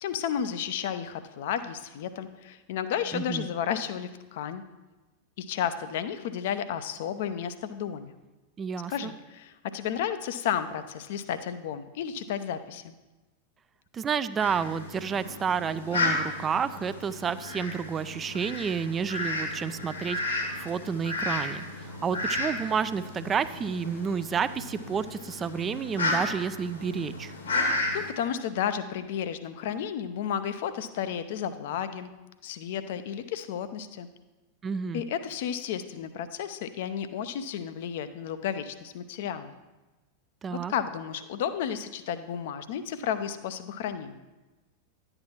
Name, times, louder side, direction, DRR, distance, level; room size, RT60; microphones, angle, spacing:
voice 1, 0.0-4.6 5.4-8.1 8.9-12.9 27.6-32.1 32.4-34.1 34.9-39.5 40.7-44.2, left 9 dB, 55° left, 11 dB, 0.5 m, -32 dB
voice 2, 3.1-3.5 8.6-9.1 13.9-27.3 34.6-35.0 40.4-40.7, right 6 dB, 20° right, 14 dB, 0.3 m, -30 dB
Fowl, 14.4-28.1, left 2 dB, 75° left, 1.6 m, -33 dB
11.0 x 8.8 x 2.9 m, 1.1 s
figure-of-eight pair, 90°, 0 cm